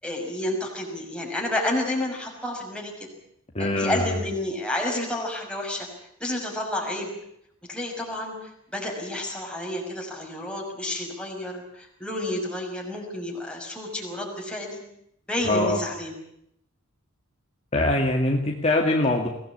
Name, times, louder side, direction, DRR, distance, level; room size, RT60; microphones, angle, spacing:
voice 1, 0.0-3.1 3.6-5.9 6.2-7.1 7.7-8.3 8.7-14.8 15.3-16.1, left 1 dB, 5° left, -1 dB, 6.0 m, -30 dB
voice 2, 3.5-4.2 15.5-15.8 17.7-19.3, left 1 dB, 30° left, 1 dB, 2.2 m, -23 dB
23.0 x 18.0 x 8.7 m, 0.76 s
head